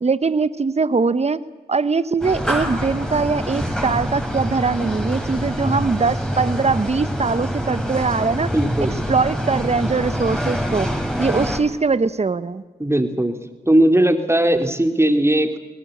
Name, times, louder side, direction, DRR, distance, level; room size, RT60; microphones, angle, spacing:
voice 1, 0.0-1.4 1.7-8.5 9.1-10.9 11.2-12.6, right 4 dB, 40° right, 15 dB, 1.1 m, -21 dB
sound 1, 2.2-11.6, equal, 5° left, 4.8 m, -25 dB
voice 2, 8.5-8.9 12.8-13.4 13.7-15.6, right 1 dB, 15° right, 6 dB, 3.0 m, -18 dB
23.0 x 18.5 x 8.0 m, 1.2 s
cardioid pair, 40°, 16 cm